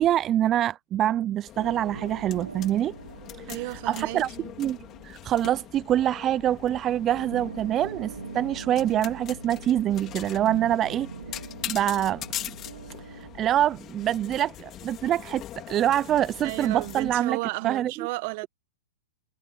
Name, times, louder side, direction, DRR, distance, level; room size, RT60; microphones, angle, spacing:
voice 1, 0.0-2.9 3.4-3.5 3.9-4.3 4.6-4.8 5.0-11.1 11.6-12.2 13.0-17.4 17.6-17.9, right 11 dB, 30° right, 0.5 m, -25 dB
sound 1, 1.5-17.2, left 12 dB, 30° left, 3.3 m, -42 dB
sound 2, 1.6-6.8 7.1-13.4, right 5 dB, 90° right, 1.0 m, -43 dB
voice 2, 3.5-4.5 16.4-18.5, right 23 dB, 50° right, 1.1 m, -33 dB
hypercardioid pair, 120°, 0 cm